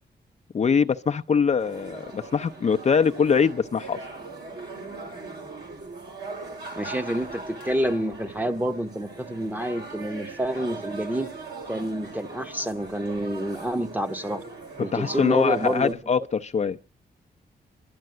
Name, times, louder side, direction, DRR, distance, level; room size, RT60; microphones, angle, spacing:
voice 1, 0.5-4.0 14.9-16.8, left 6 dB, 40° left, 0.6 m, -23 dB
sound 1, 1.6-15.9, right 3 dB, 70° right, 3.6 m, -40 dB
voice 2, 6.8-11.3 11.7-14.4 14.8-15.9, right 1 dB, 10° right, 1.0 m, -28 dB
12.0 x 10.5 x 7.7 m
cardioid pair, 85°, 17 cm